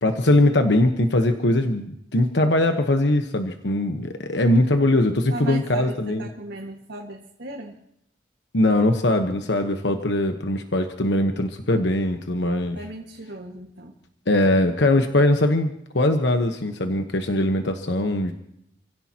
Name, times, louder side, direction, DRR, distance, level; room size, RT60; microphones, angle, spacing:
voice 1, 0.0-6.3 8.5-12.8 14.3-18.3, left 1 dB, 80° left, 6 dB, 1.1 m, -21 dB
voice 2, 5.3-7.8 12.8-14.0, right 2 dB, 80° right, -2 dB, 1.8 m, -36 dB
28.5 x 16.5 x 2.9 m, 0.76 s
head